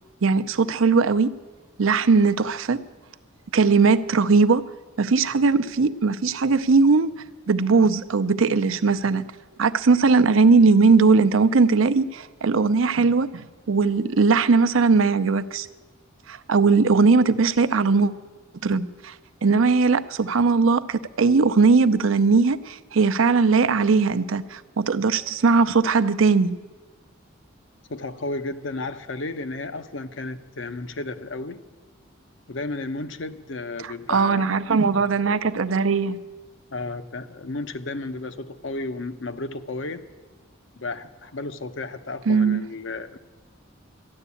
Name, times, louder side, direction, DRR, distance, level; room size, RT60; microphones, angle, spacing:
voice 1, 0.2-1.3 1.8-2.8 3.5-4.6 5.0-7.1 7.5-9.2 9.6-15.7 16.3-18.1 18.6-19.1 19.4-26.6 33.8-36.2 42.3-42.7, right 4 dB, 80° right, 0.6 m, -19 dB
voice 2, 27.9-31.6 32.5-34.5 35.3-35.4 36.7-40.0 40.8-43.2, left 2 dB, 65° left, 0.8 m, -33 dB
13.0 x 11.0 x 8.3 m
head